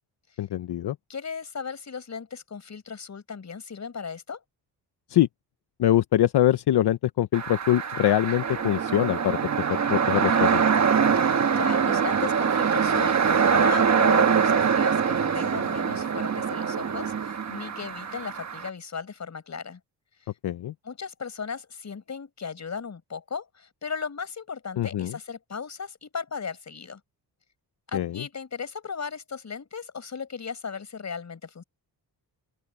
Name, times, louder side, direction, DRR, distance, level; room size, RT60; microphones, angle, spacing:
voice 1, 0.4-1.0 5.1-5.3 5.8-9.4 9.7-10.6 20.4-20.7 24.8-25.2 27.9-28.2, left 12 dB, 75° left, 0.7 m, -23 dB
voice 2, 1.1-4.4 11.1-11.3 11.5-19.8 20.8-27.0 27.9-31.6, left 6 dB, 40° left, 5.9 m, -36 dB
sound 1, 7.3-18.7, right 6 dB, 40° right, 1.3 m, -24 dB
open air
wide cardioid pair, 150°, 40 cm